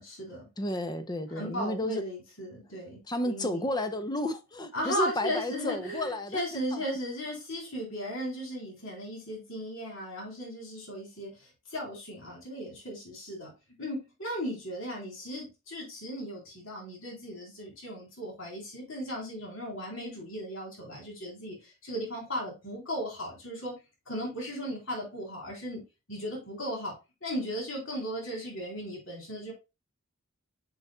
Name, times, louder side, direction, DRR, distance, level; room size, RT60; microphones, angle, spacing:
voice 1, 0.0-0.5 1.4-3.7 4.7-13.5 13.8-25.8 26.1-26.9 27.2-29.5, equal, 65° left, 3.7 m, -36 dB
voice 2, 0.6-2.0 3.1-6.8, left 1 dB, 20° left, 0.5 m, -32 dB
8.0 x 5.4 x 2.2 m
head